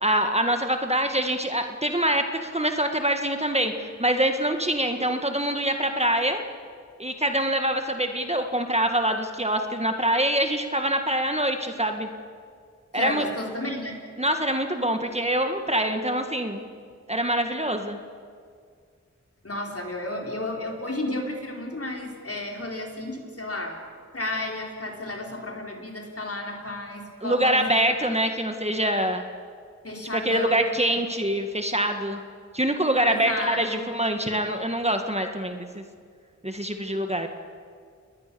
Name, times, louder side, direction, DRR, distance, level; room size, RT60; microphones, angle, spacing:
voice 1, 0.0-6.4 7.0-12.1 12.9-13.2 14.2-16.6 17.1-18.0 27.2-29.3 30.3-32.2 32.5-35.8 36.4-37.3, right 1 dB, 20° right, 5 dB, 1.8 m, -25 dB
voice 2, 12.9-14.0 19.4-23.8 24.1-27.7 28.0-28.2 29.8-30.6 33.1-33.8 34.2-34.4, left 1 dB, 50° left, 1 dB, 4.3 m, -32 dB
29.5 x 20.5 x 7.0 m, 2.1 s
wide cardioid pair, 45°, 29 cm